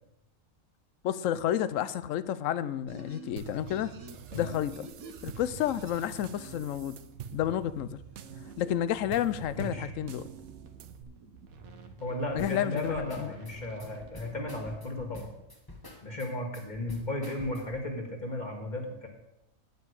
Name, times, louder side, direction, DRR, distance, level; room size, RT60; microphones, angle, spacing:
voice 1, 1.0-3.9 4.3-4.9 5.2-7.0 7.3-8.0 8.6-10.2 12.4-13.3, left 11 dB, 70° left, 0.9 m, -30 dB
sound 1, 2.9-14.6, right 4 dB, 80° right, 1.5 m, -50 dB
sound 2, 3.4-11.0, right 8 dB, 60° right, 0.9 m, -46 dB
voice 2, 9.6-9.9 12.0-15.3 16.0-19.1, left 1 dB, 35° left, 1.9 m, -35 dB
sound 3, 12.4-17.9, left 1 dB, 15° left, 1.5 m, -48 dB
9.4 x 5.3 x 8.2 m
omnidirectional pair, 1.4 m